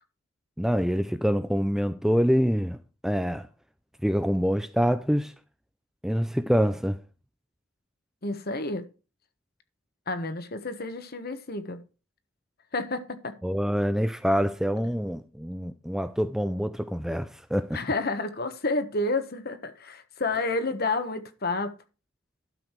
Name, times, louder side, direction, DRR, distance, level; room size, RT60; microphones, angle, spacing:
voice 1, 0.6-2.8 3.0-3.5 4.0-5.3 6.0-7.0 13.4-17.8, equal, ahead, 0.5 m, -25 dB
voice 2, 8.2-8.8 10.1-11.8 12.7-13.4 17.7-21.8, left 2 dB, 45° left, 1.4 m, -30 dB
12.0 x 6.3 x 4.6 m
head